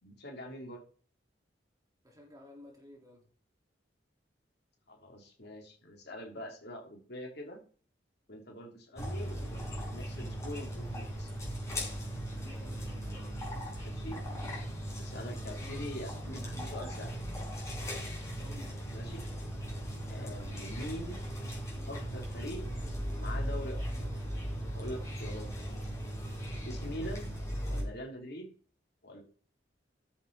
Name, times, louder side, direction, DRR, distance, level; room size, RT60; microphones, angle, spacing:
voice 1, 0.0-0.8 4.9-7.6 8.3-11.3 13.8-14.2 15.0-17.1 18.9-19.2 20.1-21.2 21.9-22.6 23.2-24.1 24.7-25.5 26.6-27.4 27.7-28.5 29.0-29.2, left 1 dB, 60° left, 2 dB, 3.1 m, -44 dB
voice 2, 2.0-3.3 12.3-13.4 15.4-15.8 18.4-18.8, left 1 dB, 20° right, 0 dB, 3.8 m, -54 dB
sound 1, 9.0-27.8, equal, 15° left, 4.7 m, -38 dB
14.0 x 7.0 x 4.0 m, 0.43 s
head